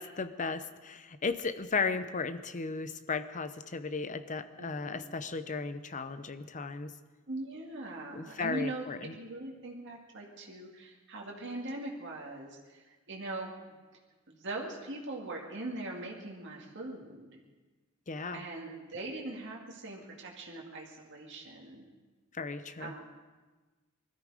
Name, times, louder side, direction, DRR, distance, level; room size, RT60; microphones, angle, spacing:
voice 1, 0.0-6.9 8.1-9.1 18.1-18.4 22.3-22.9, left 4 dB, 35° left, 11 dB, 0.7 m, -35 dB
voice 2, 4.6-5.1 7.3-8.9 9.2-13.8 14.3-17.4 18.3-21.8 22.8-23.0, right 2 dB, 60° right, -1 dB, 2.3 m, -41 dB
20.5 x 13.5 x 5.0 m, 1.3 s
head